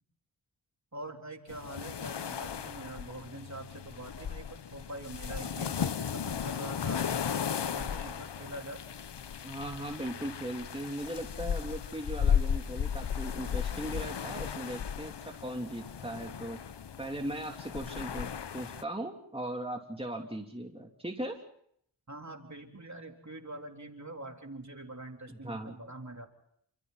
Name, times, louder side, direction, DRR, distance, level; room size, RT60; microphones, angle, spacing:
voice 1, 0.9-8.8 22.1-26.3, right 2 dB, 40° right, 3 dB, 3.7 m, -44 dB
sound 1, 1.5-18.8, left 8 dB, 65° left, 0.8 m, -35 dB
voice 2, 9.4-16.6 17.0-21.4 25.3-25.8, right 1 dB, 10° right, 2 dB, 3.2 m, -38 dB
29.0 x 27.0 x 4.2 m, 0.68 s
wide cardioid pair, 55°, 45 cm